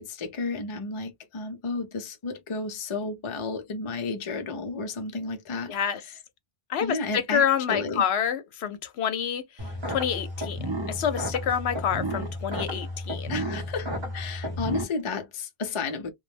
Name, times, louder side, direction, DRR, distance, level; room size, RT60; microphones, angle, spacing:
voice 1, 0.0-5.7 6.8-8.0 13.3-16.1, left 3 dB, 40° left, 0.4 m, -32 dB
voice 2, 5.7-6.0 6.7-13.4, left 8 dB, 70° left, 0.8 m, -28 dB
sound 1, 9.6-14.8, equal, 30° right, 0.7 m, -32 dB
2.2 x 2.0 x 3.1 m
omnidirectional pair, 1.1 m